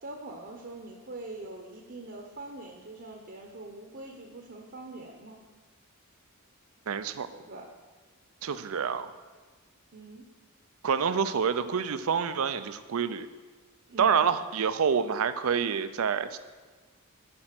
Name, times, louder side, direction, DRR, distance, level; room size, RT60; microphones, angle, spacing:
voice 1, 0.0-5.4 7.3-7.7 9.9-10.3 13.9-14.3, right 2 dB, 50° right, 2 dB, 0.8 m, -43 dB
voice 2, 6.9-7.3 8.4-9.1 10.8-13.3 14.0-16.4, right 6 dB, 70° right, 13 dB, 0.5 m, -27 dB
8.8 x 5.5 x 5.9 m, 1.4 s
head